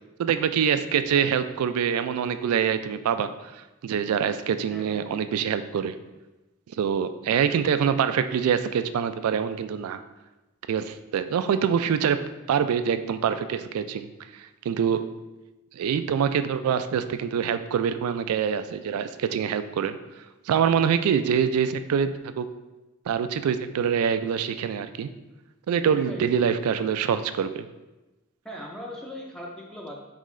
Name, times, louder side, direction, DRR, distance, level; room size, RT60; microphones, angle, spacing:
voice 1, 0.2-5.9 6.8-10.0 10.7-15.2 15.7-20.0 20.5-22.5 23.1-25.1 25.7-27.7, right 7 dB, 90° right, 11 dB, 0.3 m, -25 dB
voice 2, 4.7-5.1 26.0-26.3 28.4-30.0, left 1 dB, 5° left, -1 dB, 0.3 m, -39 dB
4.5 x 3.7 x 3.1 m, 1.1 s
head